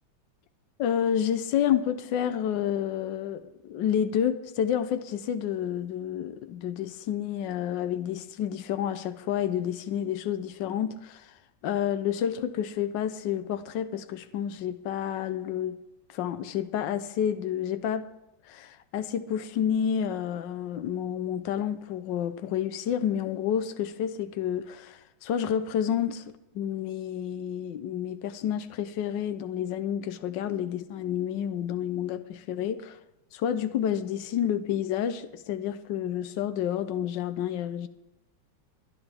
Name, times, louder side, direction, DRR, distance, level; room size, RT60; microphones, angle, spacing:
voice 1, 0.8-11.3 11.6-15.8 16.1-18.1 18.5-26.2 26.5-33.0 33.3-37.9, left 9 dB, 75° left, 1.4 m, -29 dB
22.0 x 11.0 x 3.5 m
omnidirectional pair, 2.1 m